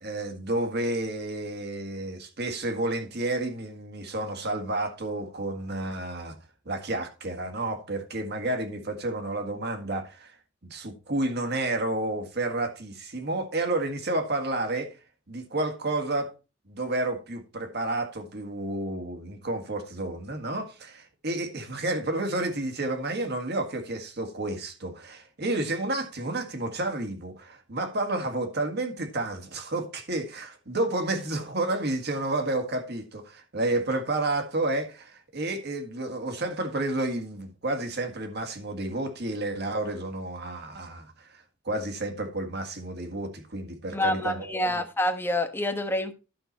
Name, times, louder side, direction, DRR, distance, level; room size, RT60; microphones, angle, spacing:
voice 1, 0.0-6.4 6.7-10.3 10.7-14.9 15.3-16.3 16.7-44.5, right 2 dB, 60° right, 1.8 m, -30 dB
voice 2, 43.9-46.1, left 1 dB, 10° left, 1.1 m, -27 dB
11.5 x 5.7 x 4.2 m
head